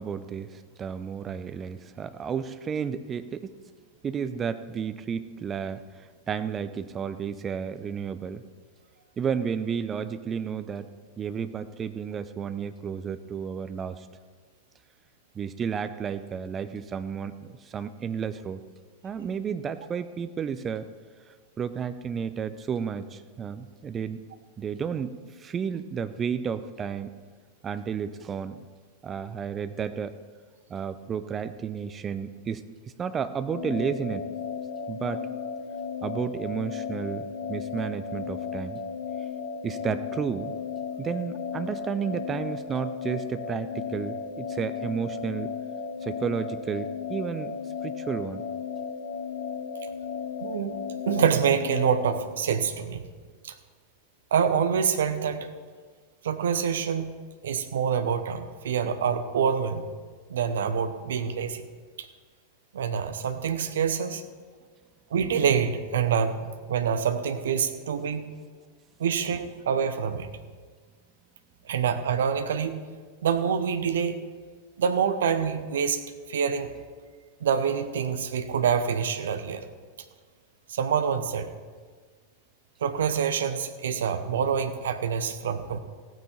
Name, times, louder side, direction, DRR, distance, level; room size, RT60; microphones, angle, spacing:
voice 1, 0.0-3.5 4.0-5.8 6.3-8.4 9.2-10.9 11.2-14.1 15.3-18.6 19.0-20.9 21.6-24.2 24.6-27.1 27.6-28.6 29.0-30.2 30.7-32.6 33.0-34.3 34.9-35.3 36.0-38.8 39.6-40.5 41.0-45.5 46.0-47.5 47.8-48.5, right 7 dB, 25° right, 12 dB, 0.6 m, -32 dB
sound 1, 33.5-52.2, left 6 dB, 50° left, 1.8 m, -35 dB
voice 2, 50.4-53.0 53.4-53.5 54.3-55.5 56.2-57.1 57.4-59.9 60.3-61.7 62.0-62.1 62.7-64.2 65.1-68.3 69.0-70.3 71.7-72.8 73.2-74.2 74.8-76.0 76.3-76.7 77.4-79.6 80.7-81.5 82.8-85.8, right 7 dB, 60° right, 10 dB, 0.8 m, -26 dB
16.0 x 9.1 x 4.4 m, 1.5 s
figure-of-eight pair, 90°, 0 cm